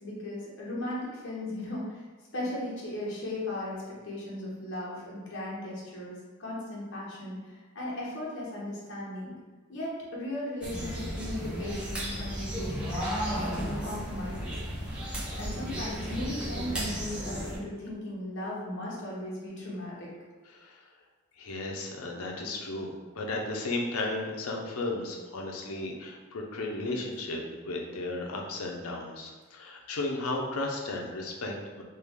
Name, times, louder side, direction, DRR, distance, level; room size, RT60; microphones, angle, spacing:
voice 1, 0.0-2.0 2.3-9.3 9.7-14.6 15.4-20.1, left 1 dB, 55° left, -5 dB, 1.0 m, -37 dB
sound 1, 10.6-17.6, equal, 5° right, 0.6 m, -34 dB
voice 2, 21.4-31.8, left 2 dB, 85° left, 0 dB, 0.6 m, -34 dB
3.3 x 2.3 x 3.5 m, 1.4 s
head